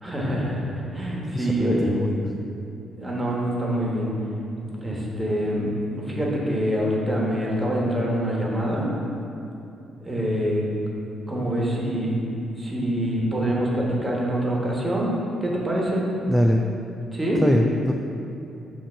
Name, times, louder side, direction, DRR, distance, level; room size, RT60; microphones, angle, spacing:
voice 1, 0.0-1.9 2.9-4.1 4.8-8.9 10.0-10.6 11.3-12.2 12.6-15.1 15.4-16.0 17.1-17.4, equal, 20° right, -4 dB, 1.4 m, -25 dB
voice 2, 1.3-2.3 16.3-16.6 17.4-17.9, equal, ahead, 1 dB, 0.3 m, -22 dB
7.5 x 2.9 x 5.6 m, 2.7 s
cardioid pair, 90°, 0 cm